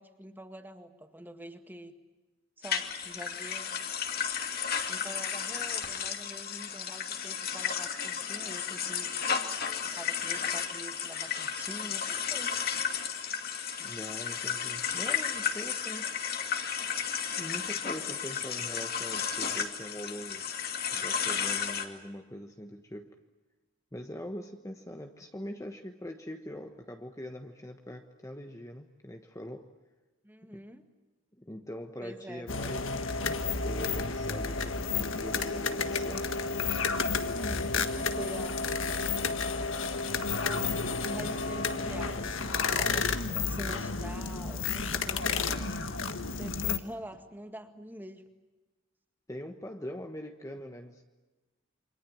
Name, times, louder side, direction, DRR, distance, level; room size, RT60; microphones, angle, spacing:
voice 1, 0.0-1.9 2.6-3.8 4.9-9.2 9.9-12.7 30.2-30.9 32.0-32.5 37.4-38.6 40.4-40.7 41.1-45.8 46.3-48.3, right 1 dB, 10° right, 7 dB, 1.9 m, -46 dB
sound 1, 2.6-21.9, left 7 dB, 50° left, 2.4 m, -33 dB
voice 2, 13.8-16.1 17.4-20.5 20.9-23.2 23.9-29.7 30.5-30.6 31.4-32.9 33.6-36.3 49.3-51.0, equal, 15° left, 5 dB, 1.2 m, -42 dB
sound 2, 32.5-46.8, left 4 dB, 75° left, 1.6 m, -31 dB
28.5 x 25.0 x 7.3 m, 1.1 s
head